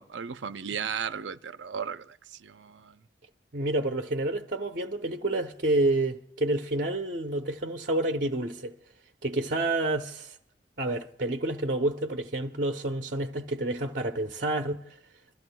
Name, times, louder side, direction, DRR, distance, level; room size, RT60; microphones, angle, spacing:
voice 1, 0.0-3.0, right 7 dB, 85° right, 0.5 m, -36 dB
voice 2, 3.5-8.7 9.2-10.3 10.8-14.8, right 2 dB, 50° right, 0.8 m, -29 dB
29.5 x 14.0 x 2.3 m
head